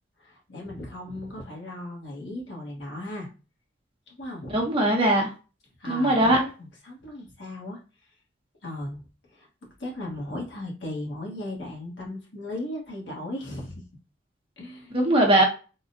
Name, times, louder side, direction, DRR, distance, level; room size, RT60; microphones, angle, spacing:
voice 1, 0.2-3.3 4.1-4.6 5.8-6.5 6.8-7.8 8.6-9.0 9.3-9.5 9.8-13.8 14.6-14.9, left 1 dB, 70° left, 1.4 m, -36 dB
voice 2, 4.5-5.3 5.9-6.4 14.9-15.4, right 1 dB, 30° right, 0.9 m, -20 dB
3.6 x 2.3 x 2.7 m
head